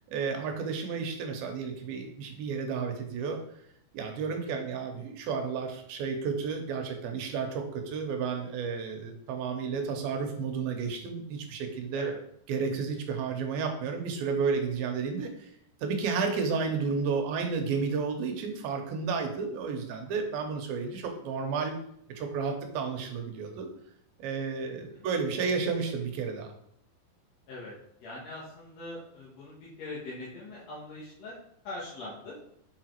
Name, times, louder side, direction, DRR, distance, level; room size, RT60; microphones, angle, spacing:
voice 1, 0.1-3.4 3.9-12.1 12.5-15.5 15.8-21.8 22.1-23.7 24.2-26.5, right 5 dB, 80° right, 4 dB, 2.7 m, -32 dB
voice 2, 4.4-4.7 11.9-12.2 24.6-25.1 27.5-27.7 28.0-31.4 31.6-32.4, left 2 dB, 55° left, -7 dB, 2.1 m, -42 dB
7.1 x 5.0 x 4.5 m, 0.71 s
omnidirectional pair, 4.4 m